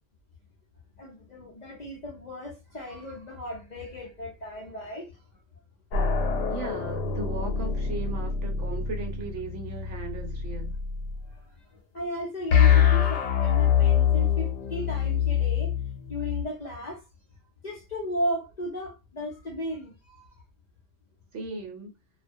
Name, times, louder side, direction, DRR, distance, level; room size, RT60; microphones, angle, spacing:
voice 1, 1.0-5.2 11.2-15.7 16.1-17.0 17.6-20.3, equal, 50° left, 0.5 m, -35 dB
sound 1, 5.9-11.2 12.5-16.4, left 8 dB, 90° left, 0.9 m, -25 dB
voice 2, 6.5-10.8 21.3-21.9, right 3 dB, 80° right, 1.0 m, -37 dB
2.3 x 2.0 x 2.6 m
omnidirectional pair, 1.2 m